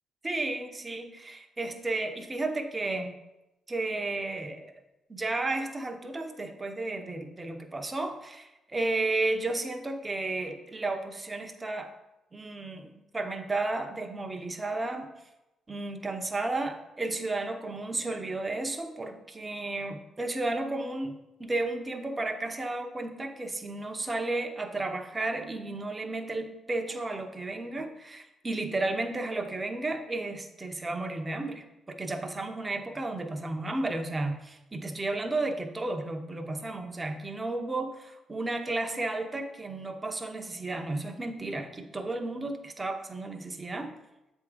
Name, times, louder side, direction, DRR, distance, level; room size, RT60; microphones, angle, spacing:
voice 1, 0.2-3.1 3.7-4.8 5.1-11.9 12.3-15.1 15.7-43.9, right 2 dB, 20° right, 5 dB, 0.8 m, -33 dB
7.6 x 3.6 x 4.9 m, 0.95 s
cardioid pair, 90°, 0 cm